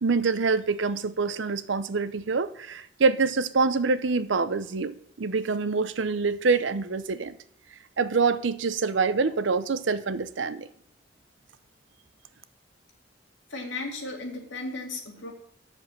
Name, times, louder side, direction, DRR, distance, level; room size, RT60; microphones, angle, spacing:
voice 1, 0.0-7.3 8.0-10.7, right 4 dB, 85° right, 0.7 m, -25 dB
voice 2, 13.5-15.3, left 2 dB, 80° left, 2.4 m, -35 dB
8.2 x 7.1 x 7.0 m
head